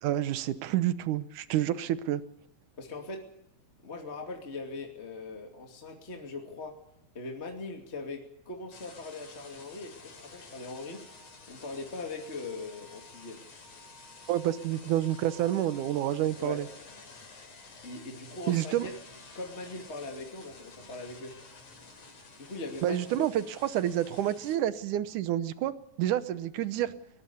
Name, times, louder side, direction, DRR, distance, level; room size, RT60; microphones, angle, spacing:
voice 1, 0.0-2.2 14.3-16.7 18.5-18.9 22.8-25.7 26.0-26.9, right 12 dB, 85° right, 13 dB, 2.5 m, -29 dB
voice 2, 2.8-3.2 3.8-6.7 7.1-11.0 11.5-13.4 16.4-16.6 17.8-18.9 19.3-21.3 22.4-23.3, left 3 dB, 25° left, 2 dB, 2.5 m, -40 dB
sound 1, 8.7-24.6, left 3 dB, 60° left, 4.8 m, -51 dB
22.0 x 19.5 x 7.0 m, 0.79 s
omnidirectional pair, 3.4 m